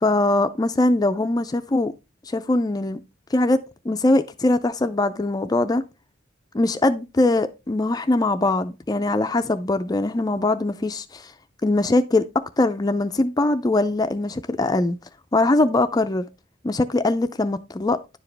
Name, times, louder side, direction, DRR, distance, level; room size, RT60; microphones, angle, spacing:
voice 1, 0.0-1.9 2.3-3.0 3.3-3.6 3.9-5.8 6.5-11.3 11.6-15.0 15.3-16.3 16.6-18.0, left 2 dB, 20° left, 0.4 m, -21 dB
10.5 x 4.9 x 3.3 m
head